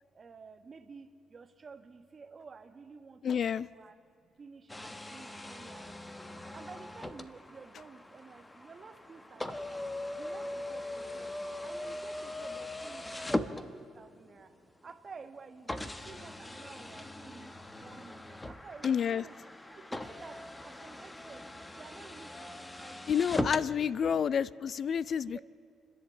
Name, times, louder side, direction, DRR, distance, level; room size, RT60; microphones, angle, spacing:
voice 1, 0.1-6.0 6.5-9.9 10.2-11.3 11.6-14.5 14.8-19.3 19.7-23.1 24.0-24.3 25.3-25.4, right 5 dB, 40° right, 8 dB, 1.5 m, -52 dB
voice 2, 3.2-3.7 18.8-19.2 23.1-25.4, left 7 dB, 55° left, 19 dB, 0.4 m, -29 dB
sound 1, 4.7-14.2 14.9-15.0 15.7-23.7, left 1 dB, 15° left, 1.1 m, -40 dB
29.0 x 11.0 x 8.4 m, 2.4 s
cardioid pair, 90°, 0 cm